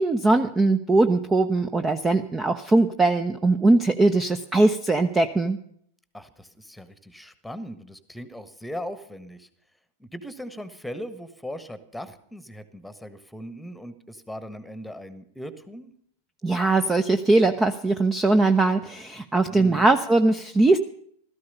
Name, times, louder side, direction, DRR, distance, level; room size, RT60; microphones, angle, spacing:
voice 1, 0.0-5.6 16.4-20.8, right 2 dB, 15° right, 9 dB, 0.7 m, -20 dB
voice 2, 6.1-9.5 10.0-15.9 19.5-19.9, equal, ahead, 13 dB, 1.4 m, -39 dB
16.5 x 13.5 x 5.5 m, 0.66 s
figure-of-eight pair, 90°, 0 cm